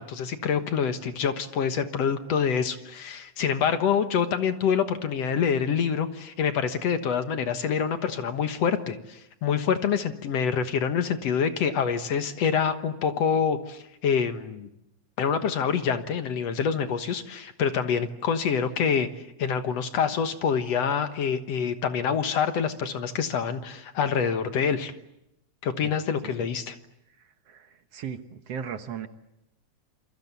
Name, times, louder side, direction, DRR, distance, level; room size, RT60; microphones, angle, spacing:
voice 1, 0.0-14.7 15.2-19.1 19.4-24.9 25.6-26.8, left 7 dB, 60° left, 9 dB, 2.3 m, -26 dB
voice 2, 27.2-29.1, right 7 dB, 60° right, 9 dB, 2.1 m, -37 dB
28.0 x 24.0 x 8.3 m, 0.84 s
omnidirectional pair, 3.4 m